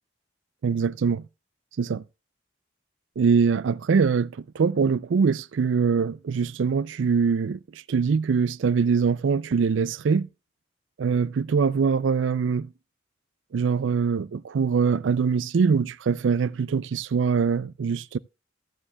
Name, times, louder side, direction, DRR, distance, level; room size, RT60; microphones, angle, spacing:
voice 1, 0.6-1.2 1.8-2.0 3.2-10.3 11.0-12.7 13.5-18.2, right 5 dB, 85° right, 0.4 m, -23 dB
14.0 x 9.9 x 2.2 m
head